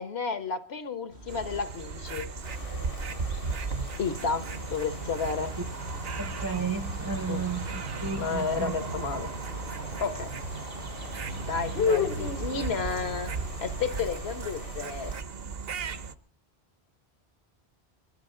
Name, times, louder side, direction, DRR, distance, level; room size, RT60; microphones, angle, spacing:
voice 1, 0.0-2.3 4.0-5.5 7.3-7.5 8.2-9.3 10.0-10.3 11.5-13.3 13.6-15.1, left 5 dB, 80° left, 1.4 m, -32 dB
sound 1, 1.1-14.7, right 1 dB, 85° right, 7.4 m, -46 dB
sound 2, 1.3-16.1, right 4 dB, 70° right, 1.0 m, -36 dB
sound 3, 2.4-15.2, left 5 dB, 60° left, 1.0 m, -38 dB
voice 2, 6.2-8.7, right 5 dB, 25° right, 0.5 m, -33 dB
22.0 x 12.5 x 3.8 m
omnidirectional pair, 1.1 m